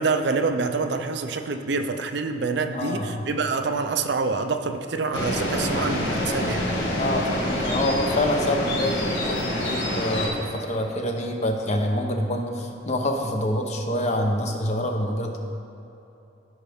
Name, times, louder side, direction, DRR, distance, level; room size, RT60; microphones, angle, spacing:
voice 1, 0.0-6.7, right 4 dB, 65° right, 7 dB, 0.5 m, -26 dB
voice 2, 2.7-3.3 7.0-15.4, left 1 dB, 40° left, 3 dB, 0.8 m, -26 dB
sound 1, 5.1-10.3, left 1 dB, 70° left, 1.8 m, -26 dB
14.0 x 5.8 x 3.6 m, 3.0 s
head